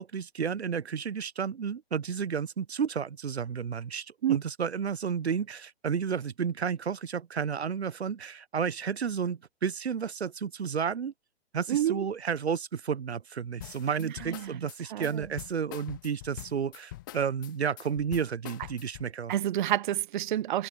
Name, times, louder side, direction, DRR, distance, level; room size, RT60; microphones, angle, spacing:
voice 1, 0.0-11.1 11.5-19.3, right 7 dB, 85° right, 0.7 m, -32 dB
voice 2, 11.7-12.0 14.0-15.2 19.3-20.7, right 12 dB, 50° right, 0.5 m, -29 dB
sound 1, 13.6-19.1, left 16 dB, 20° left, 0.4 m, -44 dB
figure-of-eight pair, 125°, 31 cm